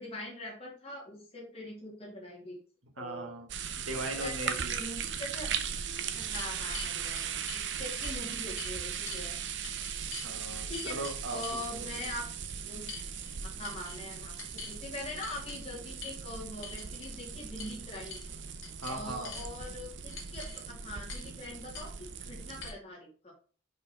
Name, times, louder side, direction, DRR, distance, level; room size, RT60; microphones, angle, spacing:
voice 1, 0.0-2.6 3.0-3.3 4.1-5.5 6.1-9.3 10.7-11.0 11.3-12.3 12.6-12.9 13.4-18.2 18.9-23.3, left 1 dB, 30° left, -3 dB, 2.4 m, -43 dB
voice 2, 2.8-3.5 3.8-4.7 10.2-11.9 18.8-19.4, right 2 dB, 80° right, 3 dB, 1.5 m, -39 dB
sound 1, 3.5-22.7, right 7 dB, 60° right, 0.6 m, -38 dB
sound 2, 5.8-7.6 8.0-8.8 9.1-9.3 9.6-10.3 10.7-11.6 12.0-12.2 12.9-13.4 13.6-14.0 14.4-14.8 15.2-15.6 16.0-16.2 16.6-17.1 17.6-17.8 18.1-18.3 18.6-19.5 20.1-20.6 21.1-21.3 21.7-21.9 22.6-22.7, left 6 dB, 70° left, 2.3 m, -45 dB
5.4 x 4.4 x 4.2 m, 0.41 s
head